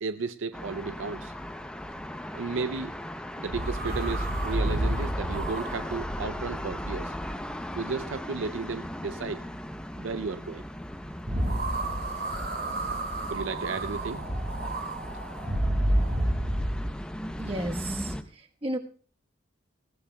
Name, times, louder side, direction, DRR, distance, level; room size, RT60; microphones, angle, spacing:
voice 1, 0.0-1.3 2.3-3.0 3.4-7.1 7.8-9.4 10.0-10.6 13.3-14.2, right 4 dB, 75° right, 12 dB, 0.5 m, -34 dB
sound 1, 0.5-18.2, left 1 dB, 5° left, 0.6 m, -38 dB
sound 2, 3.5-7.8 11.3-16.9, right 1 dB, 55° right, 3.7 m, -30 dB
voice 2, 17.4-18.2 18.6-18.8, right 1 dB, 30° right, 4 dB, 1.2 m, -32 dB
21.0 x 16.0 x 2.2 m, 0.39 s
head